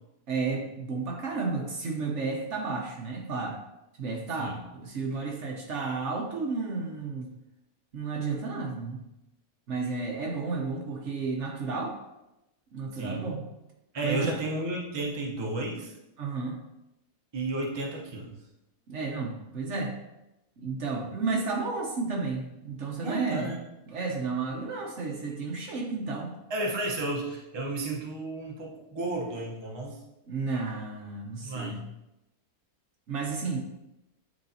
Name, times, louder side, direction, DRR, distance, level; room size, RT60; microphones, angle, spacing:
voice 1, 0.3-3.6 4.0-7.3 7.9-9.0 9.7-12.0 12.7-13.4 14.0-14.3 16.2-16.6 18.9-20.0 20.6-23.5 23.9-26.4 30.3-31.8 33.1-33.6, right 4 dB, 60° right, 0 dB, 1.1 m, -32 dB
voice 2, 12.9-13.3 13.9-15.9 17.3-18.3 23.0-23.6 26.5-30.0 31.4-31.9, right 2 dB, 25° right, -2 dB, 0.8 m, -32 dB
9.1 x 3.9 x 2.8 m, 0.93 s
omnidirectional pair, 1.5 m